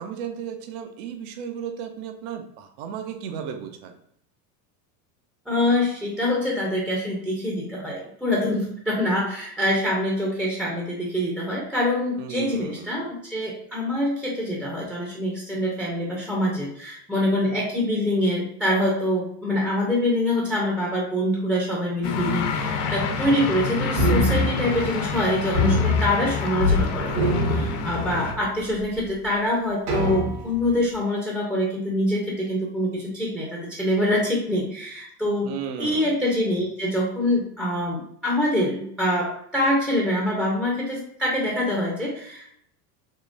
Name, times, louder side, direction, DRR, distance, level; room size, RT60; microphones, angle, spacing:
voice 1, 0.0-3.9 12.2-13.0 35.4-36.2, right 8 dB, 60° right, 6 dB, 0.6 m, -34 dB
voice 2, 5.5-35.5 35.8-42.5, left 1 dB, ahead, -3 dB, 0.5 m, -25 dB
sound 1, 22.0-28.3, left 4 dB, 60° left, 0.7 m, -28 dB
sound 2, 24.0-25.2 25.5-26.8 27.1-28.4 29.0-29.1 29.9-30.7, left 1 dB, 80° right, 1.5 m, -24 dB
3.7 x 2.9 x 2.4 m, 0.68 s
supercardioid pair, 115°, 47 cm